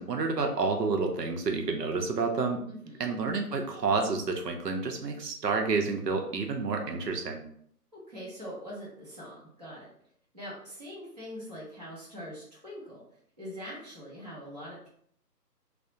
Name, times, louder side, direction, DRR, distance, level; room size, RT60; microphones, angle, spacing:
voice 1, 0.0-2.6 3.0-7.4, right 4 dB, 75° right, 3 dB, 0.6 m, -29 dB
voice 2, 2.7-3.1 7.9-9.9 10.3-13.0 13.4-14.9, equal, 25° right, -7 dB, 0.6 m, -43 dB
2.3 x 2.0 x 2.7 m, 0.64 s
figure-of-eight pair, 150°, 49 cm